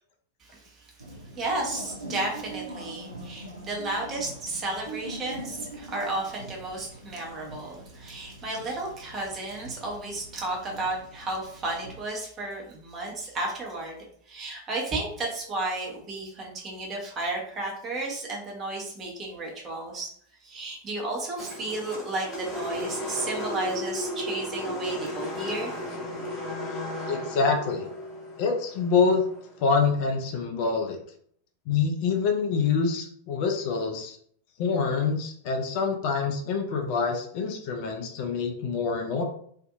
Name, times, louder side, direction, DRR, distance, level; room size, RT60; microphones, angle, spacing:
voice 1, 0.4-0.9 1.3-20.1 20.4-25.7, right 2 dB, 25° right, -2 dB, 0.9 m, -33 dB
sound 1, 1.0-12.0, right 1 dB, 85° right, 0.5 m, -43 dB
sound 2, 21.4-29.7, left 1 dB, 15° left, 1.0 m, -34 dB
voice 2, 27.1-27.9 28.4-29.2 29.6-31.0 31.7-34.2 34.6-39.2, left 5 dB, 45° left, 3 dB, 0.4 m, -26 dB
2.6 x 2.6 x 2.4 m, 0.63 s
figure-of-eight pair, 90°, 0 cm